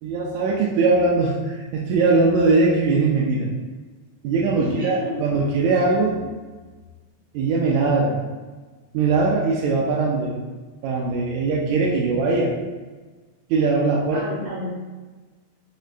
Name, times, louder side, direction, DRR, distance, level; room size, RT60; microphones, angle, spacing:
voice 1, 0.0-3.5 4.2-6.2 7.3-8.2 8.9-10.4 10.8-12.5 13.5-14.2, right 3 dB, 80° right, -4 dB, 1.8 m, -20 dB
voice 2, 4.5-5.1 6.2-6.3 14.1-14.7, left 1 dB, 60° right, -9 dB, 1.3 m, -31 dB
5.1 x 2.2 x 2.5 m, 1.3 s
omnidirectional pair, 3.5 m